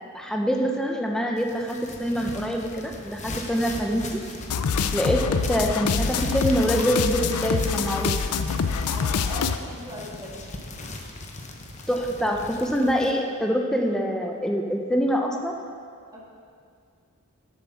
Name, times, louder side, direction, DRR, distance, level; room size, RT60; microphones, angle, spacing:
voice 1, 0.1-4.2 4.9-8.2 11.9-15.6, equal, 5° left, 1 dB, 0.6 m, -25 dB
sound 1, 1.4-13.1, left 2 dB, 30° left, 0.8 m, -38 dB
sound 2, 4.5-9.6, left 5 dB, 80° left, 0.4 m, -25 dB
voice 2, 8.9-10.4 16.1-16.2, equal, 15° right, -5 dB, 1.8 m, -38 dB
8.2 x 7.1 x 5.8 m, 2.2 s
head